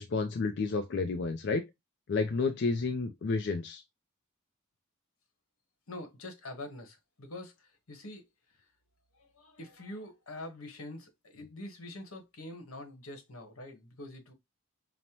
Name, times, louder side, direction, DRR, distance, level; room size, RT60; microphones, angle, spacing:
voice 1, 0.0-1.6 2.1-3.8, left 4 dB, 55° left, 0.4 m, -30 dB
voice 2, 5.9-8.2 9.1-14.3, left 1 dB, 85° left, 1.1 m, -45 dB
5.3 x 2.1 x 2.9 m
head